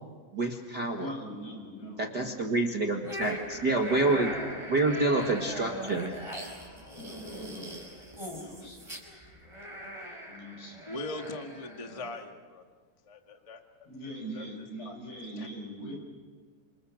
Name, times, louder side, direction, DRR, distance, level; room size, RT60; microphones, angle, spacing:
voice 1, 0.3-1.1 2.0-4.3 4.7-6.1, right 2 dB, 40° right, 0 dB, 1.6 m, -27 dB
voice 2, 0.9-2.6 2.9-3.9 6.5-7.8 8.2-9.0 10.3-11.0 13.9-15.9, equal, 80° left, 0 dB, 8.7 m, -43 dB
sound 1, 3.0-12.2, equal, 5° right, 4.7 m, -40 dB
voice 3, 10.8-12.7 13.0-13.6 14.3-14.4 14.8-15.0 15.4-15.5, left 2 dB, 25° left, 4 dB, 0.7 m, -40 dB
28.5 x 27.0 x 6.5 m, 1.5 s
omnidirectional pair, 4.3 m